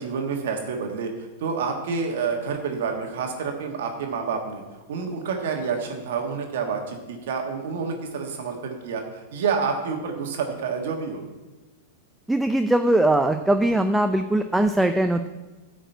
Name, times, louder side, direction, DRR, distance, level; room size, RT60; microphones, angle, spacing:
voice 1, 0.0-4.6 4.9-11.2, right 5 dB, 70° right, 3 dB, 1.5 m, -28 dB
voice 2, 12.3-15.3, right 1 dB, 5° right, 7 dB, 0.5 m, -21 dB
9.8 x 5.1 x 7.9 m, 1.2 s
hypercardioid pair, 120°, 0 cm